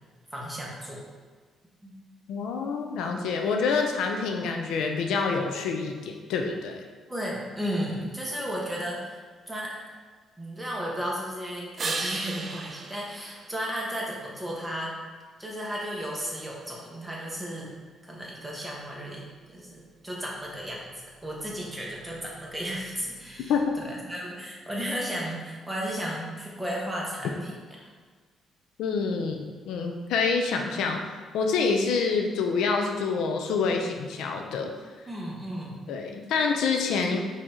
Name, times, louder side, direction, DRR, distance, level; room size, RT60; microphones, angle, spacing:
voice 1, 0.3-1.0 1.8-1.9 7.1-9.8 10.4-14.9 15.4-17.7 18.0-20.9 21.2-27.5 35.1-35.8, equal, 10° right, -4 dB, 1.2 m, -34 dB
voice 2, 2.3-6.8 23.5-23.7 28.8-31.0 31.3-34.7 35.9-37.2, left 5 dB, 85° left, 3 dB, 0.5 m, -27 dB
sound 1, 11.8-14.3 20.1-24.1, right 3 dB, 40° right, 0.5 m, -39 dB
5.0 x 2.8 x 3.6 m, 1.5 s
cardioid pair, 90°, 0 cm